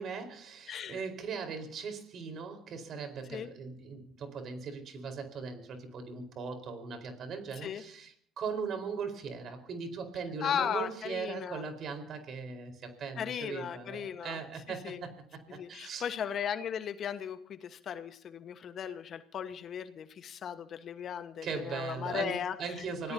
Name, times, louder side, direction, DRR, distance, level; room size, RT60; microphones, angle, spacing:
voice 1, 0.0-16.1 21.4-23.1, right 5 dB, 55° right, 4.5 m, -39 dB
voice 2, 0.7-1.0 3.3-3.5 7.6-7.8 10.4-11.6 13.2-14.4 14.8-15.1 15.5-22.8 23.0-23.1, left 8 dB, 50° left, 1.3 m, -36 dB
25.0 x 17.5 x 2.8 m
supercardioid pair, 75°, 0 cm